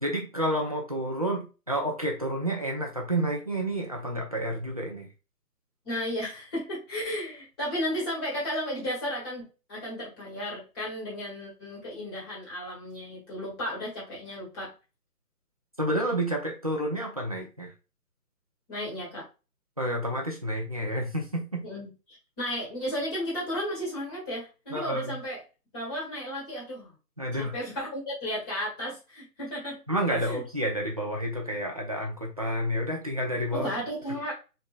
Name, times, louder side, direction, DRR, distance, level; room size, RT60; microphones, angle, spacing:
voice 1, 0.0-5.1 15.8-17.7 19.8-21.6 24.7-25.2 27.2-27.5 29.9-33.7, right 1 dB, 25° right, 0 dB, 0.6 m, -30 dB
voice 2, 5.8-14.7 18.7-19.3 21.6-25.4 25.7-26.9 27.3-29.8 30.1-30.4 33.5-34.3, equal, 15° left, -5 dB, 1.8 m, -34 dB
4.6 x 3.7 x 2.3 m, 0.31 s
figure-of-eight pair, 160°, 48 cm